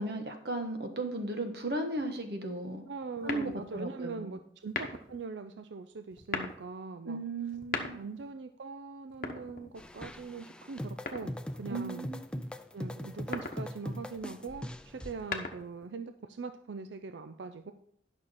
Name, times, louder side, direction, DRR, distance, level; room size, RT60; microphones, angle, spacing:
voice 1, 0.0-2.9 3.2-4.3 7.0-8.0 11.7-12.4, right 2 dB, 60° right, 5 dB, 1.4 m, -36 dB
voice 2, 2.9-7.2 7.9-12.1 12.7-17.7, right 4 dB, 80° right, 8 dB, 0.5 m, -42 dB
sound 1, 3.2-3.9 4.6-5.2 6.1-6.6 7.5-8.3 9.1-10.0 11.1-11.7 13.1-13.7 15.0-15.9, left 4 dB, 50° left, 1.0 m, -38 dB
sound 2, 9.8-15.2, equal, 5° left, 0.4 m, -41 dB
11.0 x 6.3 x 4.2 m, 0.70 s
head